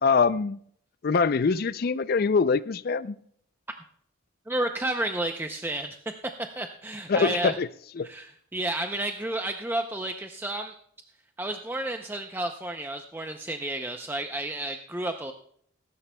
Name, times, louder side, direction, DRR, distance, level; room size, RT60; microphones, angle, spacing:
voice 1, 0.0-0.6 1.0-3.2 7.1-7.7 8.0-8.1, left 5 dB, 45° left, 0.4 m, -23 dB
voice 2, 4.5-6.0 6.5-7.6 8.0-10.7 11.4-15.3, right 1 dB, 10° right, 0.5 m, -31 dB
20.0 x 11.0 x 2.2 m
head